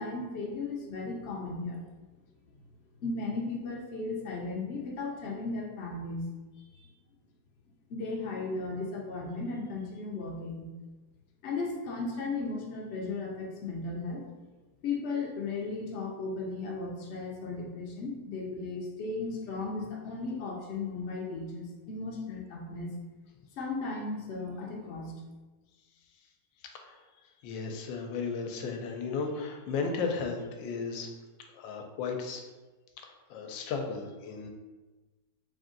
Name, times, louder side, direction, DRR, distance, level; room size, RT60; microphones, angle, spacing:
voice 1, 0.0-1.8 3.0-6.3 6.7-6.9 7.9-10.7 11.4-14.2 14.8-22.9 23.6-25.1, left 3 dB, 65° left, -2 dB, 0.7 m, -36 dB
voice 2, 27.4-31.1 31.5-32.4 33.0-34.5, left 4 dB, 85° left, 4 dB, 1.3 m, -35 dB
3.5 x 2.6 x 3.7 m, 1.2 s
omnidirectional pair, 2.0 m